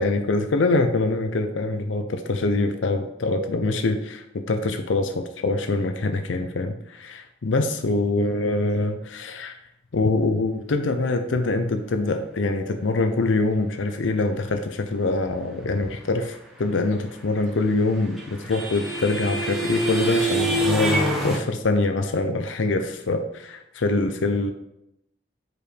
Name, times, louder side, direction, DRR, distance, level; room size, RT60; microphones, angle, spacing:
voice 1, 0.0-9.6 9.9-24.5, left 2 dB, 85° left, 6 dB, 0.5 m, -24 dB
sound 1, 17.5-21.4, right 2 dB, ahead, 0.9 m, -25 dB
5.0 x 4.7 x 5.0 m, 0.83 s
head